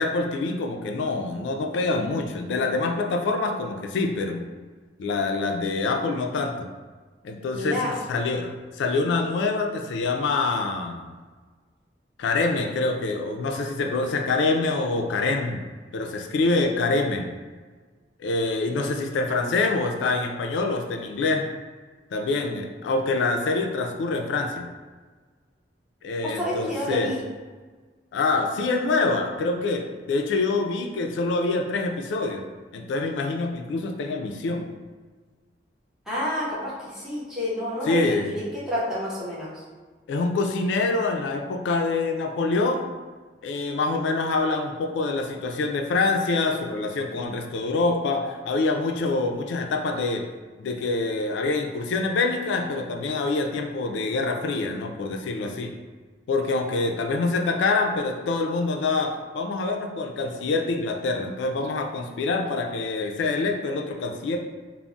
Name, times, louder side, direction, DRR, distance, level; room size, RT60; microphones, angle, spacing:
voice 1, 0.0-4.4 5.0-6.7 7.2-11.1 12.2-15.6 15.9-17.3 18.2-21.5 22.1-24.7 26.0-27.1 28.1-32.4 32.7-34.6 37.9-38.3 40.1-42.9 43.4-50.2 50.6-55.7 56.3-64.4, left 3 dB, 85° left, 3 dB, 0.3 m, -25 dB
voice 2, 7.5-7.9 26.2-27.2 36.1-39.6, equal, 5° right, -9 dB, 0.8 m, -29 dB
2.3 x 2.0 x 3.7 m, 1.4 s
head